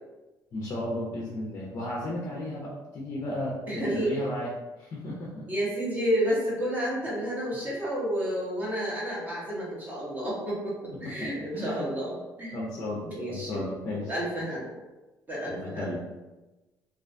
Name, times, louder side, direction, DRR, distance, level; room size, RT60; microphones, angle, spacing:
voice 1, 0.5-4.5 4.8-5.5 10.9-11.9 12.5-14.5 15.5-16.0, left 1 dB, 40° left, -4 dB, 0.4 m, -34 dB
voice 2, 3.7-4.1 5.5-12.6 13.0-13.6 13.9-14.7 15.3-16.0, equal, 25° right, -6 dB, 0.8 m, -30 dB
2.3 x 2.2 x 2.5 m, 1.1 s
cardioid pair, 155°, 7 cm